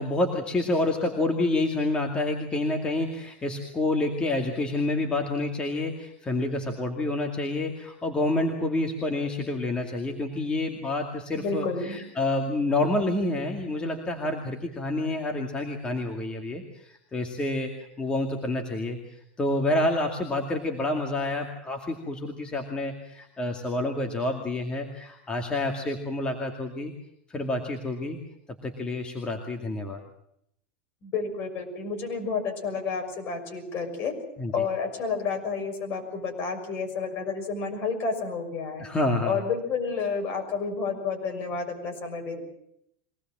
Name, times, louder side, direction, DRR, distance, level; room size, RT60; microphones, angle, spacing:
voice 1, 0.0-17.7 18.0-26.9 27.3-28.2 28.6-30.0 34.4-34.7 38.8-39.4, left 2 dB, 15° left, 3 dB, 2.4 m, -28 dB
voice 2, 11.3-12.0 31.0-34.1 34.5-38.8 39.2-42.4, left 5 dB, 40° left, 4 dB, 6.2 m, -30 dB
23.5 x 19.0 x 7.6 m, 0.75 s
supercardioid pair, 135°, 6 cm